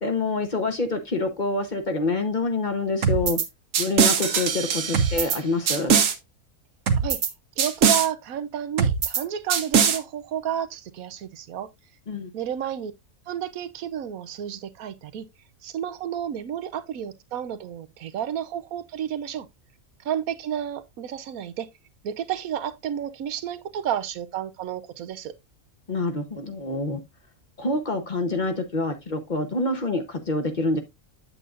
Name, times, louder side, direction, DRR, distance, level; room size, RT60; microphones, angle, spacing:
voice 1, 0.0-3.4 3.8-6.0 12.1-12.3 25.9-27.0 27.6-30.8, left 3 dB, 35° left, 1.0 m, -26 dB
sound 1, 3.0-3.5 3.7-5.4 5.7-6.1 6.9-7.3 7.6-8.1 8.8-9.2 9.5-10.0, right 6 dB, 70° right, 1.3 m, -21 dB
voice 2, 7.6-11.7 12.3-12.9 13.3-15.3 15.6-19.5 20.0-21.7 22.0-25.3, right 9 dB, 85° right, 1.2 m, -31 dB
7.9 x 7.9 x 2.4 m
omnidirectional pair, 1.4 m